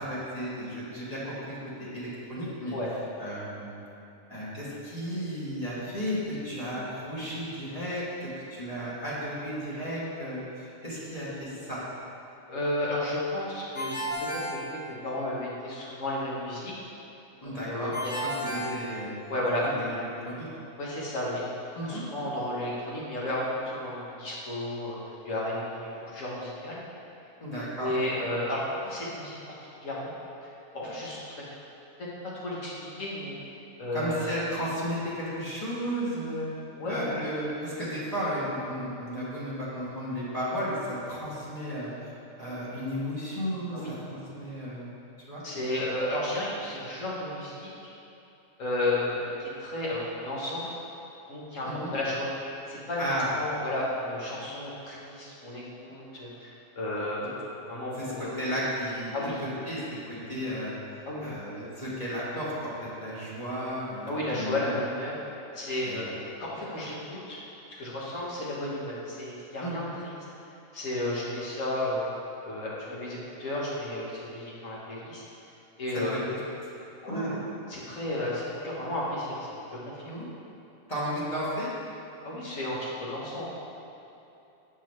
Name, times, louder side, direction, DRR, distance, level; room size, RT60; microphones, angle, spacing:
voice 1, 0.0-1.6 1.9-2.7 3.2-3.7 4.3-11.8 17.4-17.9 18.2-19.2 19.6-20.4 21.7-22.0 27.4-27.9 33.9-36.5 36.9-44.9 45.3-45.4 51.7-51.9 53.0-53.3 55.9-56.0 58.0-59.1 59.4-60.8 61.2-64.8 65.8-66.0 69.6-69.9 76.1-76.2 77.0-77.4 80.0-80.2 80.9-81.7, equal, 30° left, -9 dB, 1.4 m, -34 dB
voice 2, 12.5-16.7 17.7-18.2 18.6-18.7 19.3-19.7 20.8-21.5 21.9-26.8 27.8-29.4 29.8-30.2 30.7-31.4 32.4-33.3 33.8-34.3 36.7-37.1 43.7-43.9 45.4-47.7 48.6-50.7 51.3-52.3 52.7-58.3 59.1-59.4 61.0-61.3 64.1-65.2 65.5-67.4 67.8-70.1 70.7-72.0 72.4-75.2 75.8-76.3 77.0-77.3 77.7-80.0 82.2-83.4, left 1 dB, 65° left, -6 dB, 1.6 m, -33 dB
Ringtone, 13.7-15.4 17.9-19.6, equal, 90° left, 1.7 m, -34 dB
6.4 x 6.2 x 3.2 m, 2.9 s
omnidirectional pair, 1.5 m